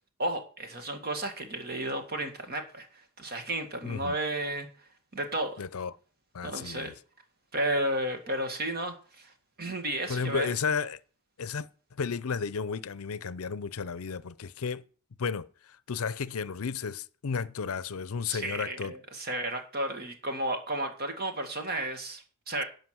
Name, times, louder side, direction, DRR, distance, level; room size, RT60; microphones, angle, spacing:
voice 1, 0.2-5.6 6.4-6.9 7.5-10.5 18.2-22.6, right 1 dB, 45° right, 2.0 m, -33 dB
voice 2, 3.8-4.2 5.6-5.9 6.3-6.9 10.1-11.0 11.4-11.7 12.0-14.8 15.2-18.9, left 5 dB, 70° left, 0.6 m, -33 dB
11.5 x 5.2 x 7.7 m
head